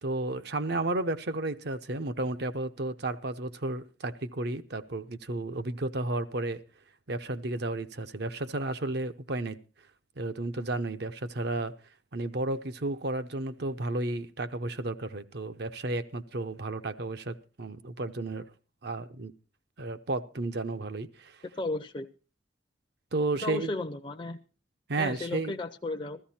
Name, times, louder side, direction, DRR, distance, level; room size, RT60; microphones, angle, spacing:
voice 1, 0.0-6.6 7.1-9.6 10.2-11.7 12.1-18.4 18.8-19.3 19.8-21.4 23.1-23.7 24.9-25.6, right 2 dB, 60° right, 0.8 m, -32 dB
voice 2, 21.6-22.1 23.4-24.4 25.0-26.2, left 2 dB, 25° left, 0.6 m, -34 dB
14.5 x 14.0 x 4.3 m
head